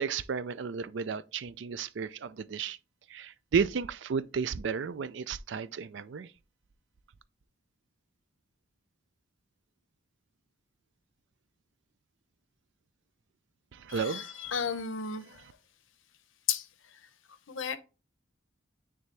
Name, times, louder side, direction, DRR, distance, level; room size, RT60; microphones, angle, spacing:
voice 1, 0.0-2.8 3.1-6.3 13.7-14.3, right 6 dB, 65° right, 0.4 m, -33 dB
voice 2, 13.9-15.4 16.5-16.7 17.5-17.8, left 7 dB, 80° left, 0.8 m, -33 dB
9.3 x 3.6 x 3.2 m
head